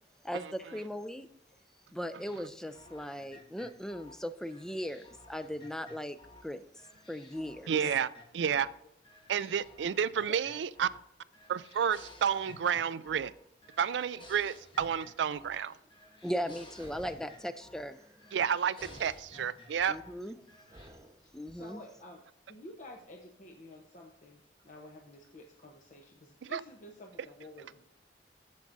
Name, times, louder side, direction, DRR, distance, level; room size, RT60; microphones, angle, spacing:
voice 1, 0.2-1.3 1.9-6.2 6.4-6.6 7.1-7.7 16.2-18.0 19.9-20.4 21.3-21.8, equal, 5° left, 9 dB, 0.4 m, -38 dB
sound 1, 2.2-6.5 6.8-8.7 9.0-11.1 11.3-13.4 13.6-15.6 15.9-17.9 18.2-20.2 20.5-20.9, left 2 dB, 30° left, 1.2 m, -55 dB
voice 2, 7.7-8.7 9.3-10.9 11.5-13.3 13.8-15.7 18.3-20.0 26.4-26.6, right 8 dB, 90° right, 17 dB, 0.4 m, -31 dB
sound 2, 14.8-15.1 15.6-15.9 16.8-17.4 17.7-18.5 18.8-21.6, right 1 dB, 20° right, 1.0 m, -55 dB
voice 3, 21.2-27.8, left 1 dB, 45° left, 1 dB, 0.9 m, -51 dB
14.0 x 7.3 x 2.6 m, 0.75 s
head